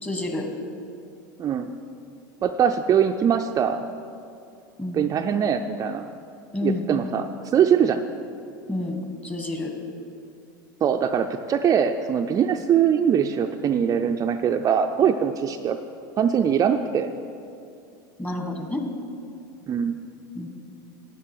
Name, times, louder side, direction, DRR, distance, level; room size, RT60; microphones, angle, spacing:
voice 1, 0.0-0.5 4.8-5.0 6.5-6.9 8.7-9.7 18.2-18.8 20.4-20.5, left 2 dB, 15° left, 3 dB, 1.8 m, -29 dB
voice 2, 1.4-1.7 2.4-3.8 4.9-6.1 6.6-8.0 10.8-15.8 16.2-17.1 19.7-20.0, right 8 dB, 30° right, 5 dB, 0.5 m, -22 dB
12.0 x 9.3 x 4.7 m, 2.6 s
hypercardioid pair, 85°, 11 cm